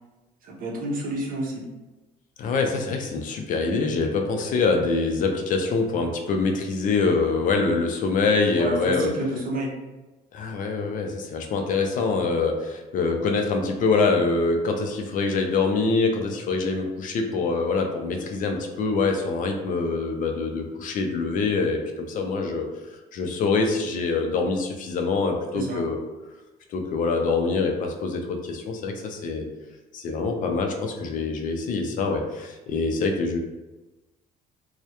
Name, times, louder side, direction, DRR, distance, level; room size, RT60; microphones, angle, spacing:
voice 1, 0.4-1.6 8.6-9.7 25.5-25.8, right 1 dB, 55° right, -2 dB, 0.6 m, -29 dB
voice 2, 2.4-9.1 10.3-22.7 23.1-26.0 26.7-29.5 29.9-33.4, left 4 dB, 50° left, 3 dB, 0.4 m, -25 dB
2.2 x 2.0 x 2.8 m, 1.1 s
cardioid pair, 110°, 17 cm